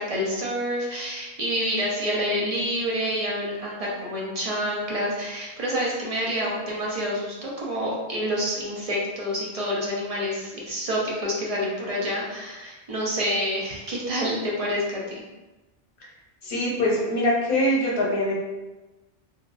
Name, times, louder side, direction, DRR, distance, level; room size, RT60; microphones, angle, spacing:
voice 1, 0.0-15.2, equal, 40° right, -4 dB, 0.7 m, -28 dB
voice 2, 16.4-18.3, left 1 dB, 60° left, -5 dB, 1.0 m, -23 dB
3.2 x 2.3 x 2.4 m, 1.1 s
omnidirectional pair, 1.1 m